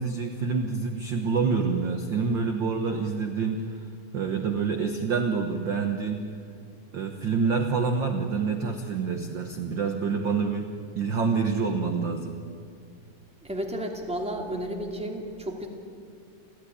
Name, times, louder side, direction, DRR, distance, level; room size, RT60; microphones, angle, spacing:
voice 1, 0.0-3.8 4.1-6.2 6.9-10.7 10.9-12.3, right 5 dB, 55° right, 5 dB, 1.4 m, -27 dB
voice 2, 13.4-15.7, equal, ahead, 2 dB, 2.1 m, -32 dB
29.5 x 14.0 x 10.0 m, 2.3 s
omnidirectional pair, 3.5 m